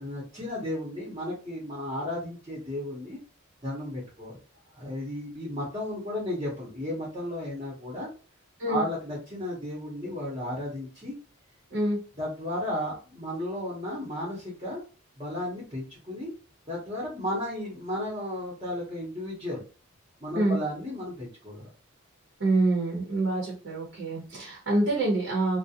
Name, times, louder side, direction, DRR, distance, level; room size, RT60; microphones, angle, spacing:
voice 1, 0.0-3.2 3.6-4.4 4.7-8.1 8.6-11.2 12.2-14.8 15.2-16.3 16.7-19.6 20.2-21.7, left 1 dB, 25° right, -7 dB, 0.7 m, -34 dB
voice 2, 22.4-25.6, right 2 dB, 55° right, -3 dB, 0.8 m, -26 dB
2.4 x 2.1 x 2.7 m, 0.34 s
head